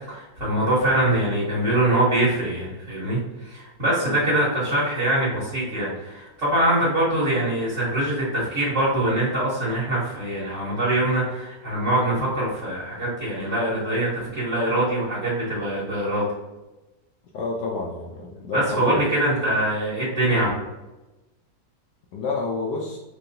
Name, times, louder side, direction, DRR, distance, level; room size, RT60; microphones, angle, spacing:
voice 1, 0.1-16.2 18.5-20.5, right 1 dB, 45° right, -10 dB, 1.6 m, -23 dB
voice 2, 17.3-19.0 22.1-23.0, left 3 dB, 70° left, -2 dB, 1.1 m, -29 dB
4.6 x 2.9 x 2.6 m, 1.1 s
omnidirectional pair, 2.0 m